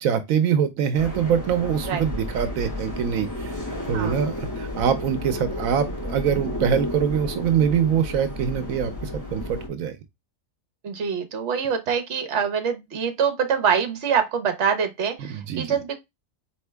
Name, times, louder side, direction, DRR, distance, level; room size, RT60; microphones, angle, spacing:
voice 1, 0.0-3.6 3.9-10.0 15.2-15.7, right 8 dB, 85° right, 1.1 m, -24 dB
sound 1, 1.0-9.7, left 1 dB, 15° left, 2.0 m, -32 dB
voice 2, 3.9-4.2 10.8-16.0, right 7 dB, 60° right, 1.2 m, -25 dB
4.4 x 3.1 x 3.3 m
omnidirectional pair, 1.4 m